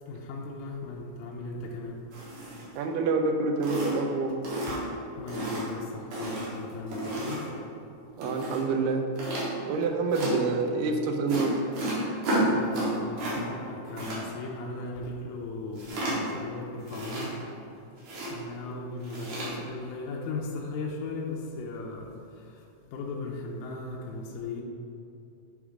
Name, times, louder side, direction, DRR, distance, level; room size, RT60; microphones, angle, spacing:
voice 1, 0.1-2.0 4.7-4.9 5.2-7.4 12.4-17.3 18.3-24.6, left 3 dB, 75° left, -1 dB, 1.8 m, -37 dB
sound 1, 2.1-2.8 3.2-3.3 3.6-4.1 4.4-5.0 5.3-5.7 6.1-7.5 8.2-8.6 9.2-9.5 10.1-10.3 11.3-13.4 13.6-14.2 15.8-16.4 16.8-17.6 18.0-18.3 19.0-19.5, right 1 dB, 65° right, 2.9 m, -32 dB
voice 2, 2.8-4.3 8.2-9.1 9.6-11.5, right 3 dB, 80° right, 4 dB, 2.3 m, -27 dB
8.3 x 3.6 x 4.9 m, 2.6 s
omnidirectional pair, 3.9 m